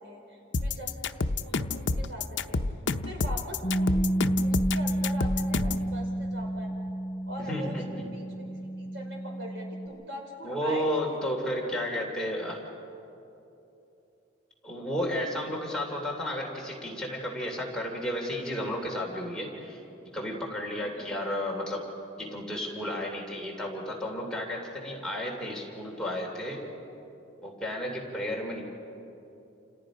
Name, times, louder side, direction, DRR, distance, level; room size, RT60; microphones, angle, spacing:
voice 1, 0.0-2.6 3.0-4.1 4.4-6.7 7.3-7.8 8.1-11.3 15.4-15.6 20.7-21.1, right 1 dB, 65° right, 0 dB, 4.8 m, -42 dB
sound 1, 0.5-5.9, left 3 dB, 70° left, 0.7 m, -29 dB
Bass guitar, 3.6-9.9, right 1 dB, 40° left, 8.0 m, -30 dB
voice 2, 7.4-7.8 10.4-12.6 14.6-19.8 20.1-21.8 22.2-26.6 27.4-28.6, equal, 5° left, -2 dB, 3.0 m, -32 dB
28.5 x 28.5 x 5.1 m, 2.9 s
head